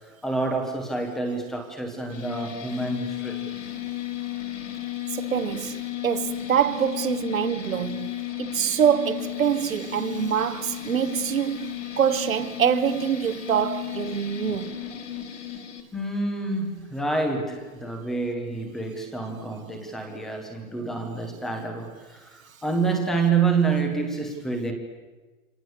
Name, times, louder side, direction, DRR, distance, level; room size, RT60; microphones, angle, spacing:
voice 1, 0.2-3.4 15.9-24.7, right 4 dB, ahead, 0.9 m, -28 dB
sound 1, 2.1-15.8, left 12 dB, 60° left, 4.8 m, -34 dB
voice 2, 5.1-14.8, right 8 dB, 75° right, 1.8 m, -25 dB
28.0 x 26.5 x 7.9 m
hypercardioid pair, 180°, 42 cm